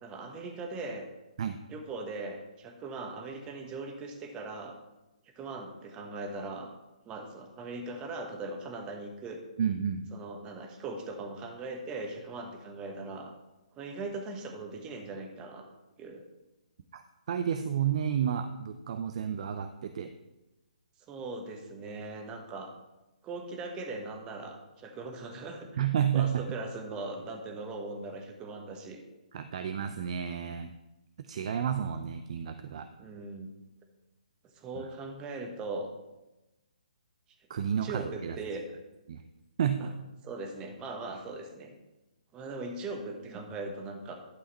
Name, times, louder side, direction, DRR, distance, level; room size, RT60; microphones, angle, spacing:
voice 1, 0.0-1.1 1.7-4.8 5.4-6.7 7.0-9.4 10.1-13.3 13.7-15.7 16.0-16.2 21.1-22.7 23.2-25.8 26.1-29.0 33.0-33.5 34.5-35.9 37.8-38.7 39.8-39.9 40.2-41.7 42.3-44.1, right 3 dB, 20° right, 4 dB, 1.2 m, -40 dB
voice 2, 9.6-10.0 16.9-17.0 17.3-20.1 25.8-26.4 29.3-30.7 31.2-32.9 34.8-34.9 37.5-38.4 39.1-39.2 39.6-39.9, right 8 dB, 50° right, 9 dB, 0.5 m, -31 dB
11.5 x 5.6 x 4.2 m, 1.0 s
figure-of-eight pair, 140°, 4 cm